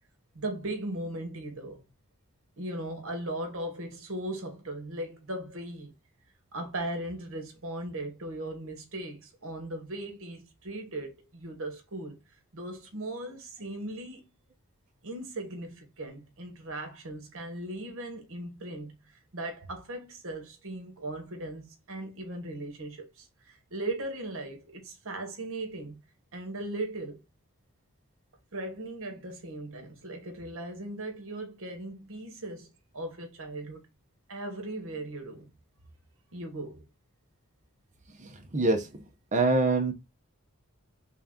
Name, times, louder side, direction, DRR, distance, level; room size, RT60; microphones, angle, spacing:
voice 1, 0.3-1.8 2.6-5.9 6.5-12.2 12.5-14.3 15.0-18.9 19.3-26.0 26.3-27.2 28.5-33.8 34.3-35.5 36.3-36.8, right 1 dB, 65° right, 1.2 m, -38 dB
voice 2, 38.2-39.0 39.3-39.9, right 3 dB, 35° right, 0.7 m, -25 dB
3.4 x 2.8 x 3.7 m
head